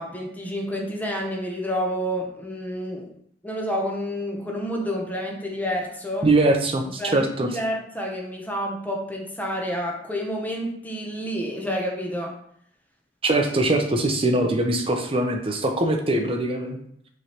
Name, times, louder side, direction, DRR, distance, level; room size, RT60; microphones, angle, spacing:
voice 1, 0.0-3.1 3.4-6.3 7.0-12.4, equal, 10° left, 0 dB, 0.7 m, -29 dB
voice 2, 6.2-7.5 13.2-16.8, right 2 dB, 30° right, 4 dB, 0.6 m, -22 dB
5.6 x 3.1 x 2.9 m, 0.68 s
head